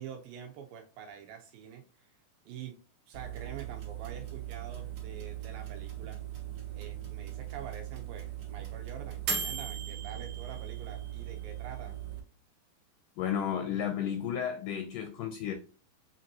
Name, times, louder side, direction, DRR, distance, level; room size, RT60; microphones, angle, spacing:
voice 1, 0.0-2.1 2.5-2.8 3.1-6.2 6.7-12.0, right 8 dB, 80° right, 2.1 m, -46 dB
sound 1, 3.1-12.2, right 8 dB, 65° right, 1.5 m, -39 dB
voice 2, 13.2-15.5, left 9 dB, 80° left, 1.9 m, -33 dB
5.9 x 2.6 x 2.6 m
omnidirectional pair, 4.3 m